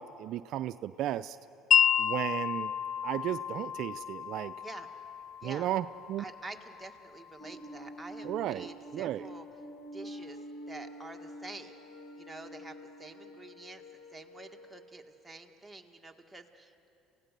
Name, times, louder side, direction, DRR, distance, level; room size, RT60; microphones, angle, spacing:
voice 1, 0.0-1.4 2.0-2.7 3.0-4.5 5.4-6.2 8.2-9.2, right 12 dB, 65° right, 13 dB, 0.4 m, -34 dB
Wind chime, 1.7-7.8, left 9 dB, 55° left, 0.4 m, -31 dB
voice 2, 5.4-5.7 6.2-9.5 9.9-10.4 10.7-11.8 12.2-13.8 14.1-16.9, right 2 dB, 5° right, 2 dB, 1.7 m, -48 dB
sound 1, 7.4-13.9, right 1 dB, 15° left, 1.7 m, -47 dB
sound 2, 10.0-14.9, left 4 dB, 80° left, 2.0 m, -55 dB
27.5 x 16.5 x 6.7 m, 2.8 s
supercardioid pair, 85°, 0 cm